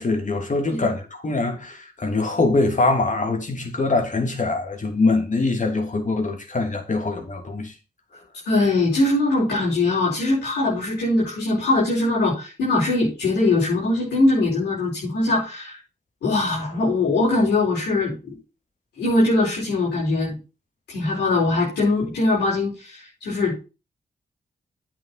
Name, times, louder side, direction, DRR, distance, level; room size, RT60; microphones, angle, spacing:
voice 1, 0.0-7.7, left 3 dB, 50° left, 3.2 m, -23 dB
voice 2, 8.4-15.8 16.2-18.4 19.0-20.3 20.9-23.5, left 2 dB, 90° left, 4.7 m, -21 dB
8.9 x 7.6 x 4.3 m
supercardioid pair, 40°, 17 cm